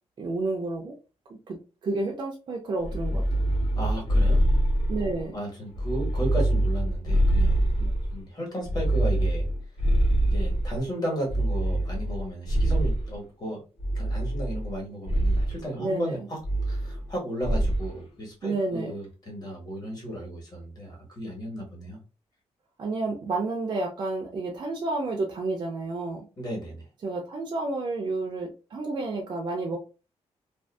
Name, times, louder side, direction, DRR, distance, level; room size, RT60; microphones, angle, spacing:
voice 1, 0.2-1.0 1.5-1.6 1.8-3.2 4.9-5.4 7.8-7.9 15.8-16.2 18.4-19.0 22.8-26.3 27.0-29.8, right 2 dB, 40° right, 1 dB, 0.4 m, -30 dB
sound 1, 2.8-5.2 5.7-8.2 8.6-10.8 11.3-13.2 13.8-14.8 15.0-15.5 16.4-17.1 17.4-17.9, right 1 dB, 55° left, 0.8 m, -24 dB
voice 2, 3.7-4.4 5.3-7.6 8.1-9.4 10.3-13.6 13.9-16.4 16.7-22.0 26.4-26.8, right 1 dB, 35° left, -2 dB, 1.3 m, -34 dB
2.5 x 2.4 x 2.3 m, 0.32 s
wide cardioid pair, 155°, 12 cm